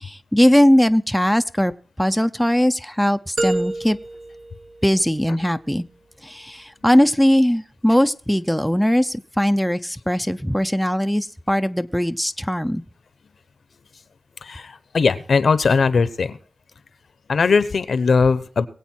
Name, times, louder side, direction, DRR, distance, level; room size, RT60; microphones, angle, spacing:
voice 1, 0.0-1.7 2.0-4.0 4.8-5.8 6.2-12.8, equal, ahead, 8 dB, 0.5 m, -19 dB
sound 1, 3.4-5.4, right 2 dB, 55° right, 1.1 m, -28 dB
voice 2, 14.4-16.4 17.3-18.7, left 5 dB, 75° left, 14 dB, 0.9 m, -19 dB
21.5 x 8.2 x 4.5 m, 0.43 s
wide cardioid pair, 95°, 0 cm